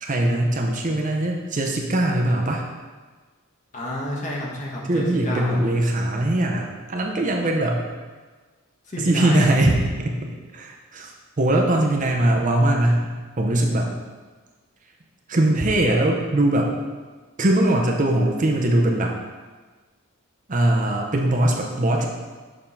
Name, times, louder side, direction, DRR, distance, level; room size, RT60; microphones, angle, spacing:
voice 1, 0.0-2.6 4.8-7.9 9.0-10.2 10.5-11.1 11.4-13.1 13.4-13.9 15.3-16.7 17.4-19.1 20.5-22.1, right 1 dB, 35° right, 1 dB, 0.6 m, -21 dB
voice 2, 3.7-5.6 8.9-9.5, left 1 dB, 35° left, -3 dB, 1.2 m, -30 dB
6.8 x 3.7 x 5.5 m, 1.4 s
head